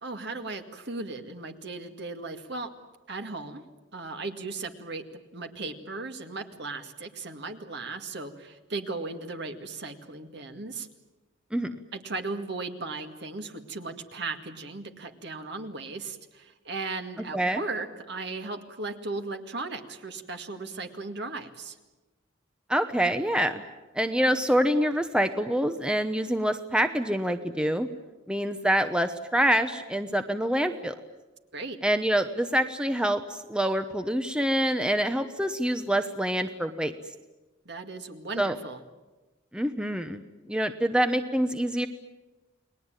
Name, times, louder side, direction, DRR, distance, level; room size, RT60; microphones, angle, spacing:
voice 1, 0.0-2.7 3.1-3.6 3.9-5.0 5.3-10.9 11.9-21.8 31.5-31.8 37.7-38.8, right 3 dB, 55° right, 6 dB, 2.1 m, -36 dB
voice 2, 22.7-23.6 23.9-27.9 28.3-31.0 31.8-36.9 38.4-38.6 39.5-40.2 40.5-41.9, equal, 5° right, 8 dB, 0.9 m, -26 dB
30.0 x 20.5 x 9.1 m, 1.1 s
head